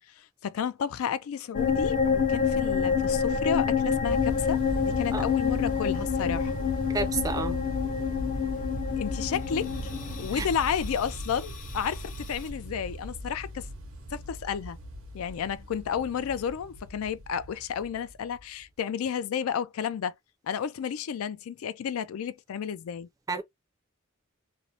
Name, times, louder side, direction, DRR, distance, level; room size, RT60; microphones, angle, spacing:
voice 1, 0.2-6.5 9.0-9.7 10.2-13.7 14.1-14.8 15.1-20.1 20.5-23.1, left 7 dB, 90° left, 0.4 m, -32 dB
sound 1, 1.5-12.5, left 6 dB, 40° left, 0.5 m, -28 dB
sound 2, 4.0-18.6, equal, 70° right, 0.8 m, -38 dB
voice 2, 6.9-7.6 10.4-10.5 23.3-23.4, right 3 dB, 15° right, 0.4 m, -30 dB
2.6 x 2.0 x 2.6 m
head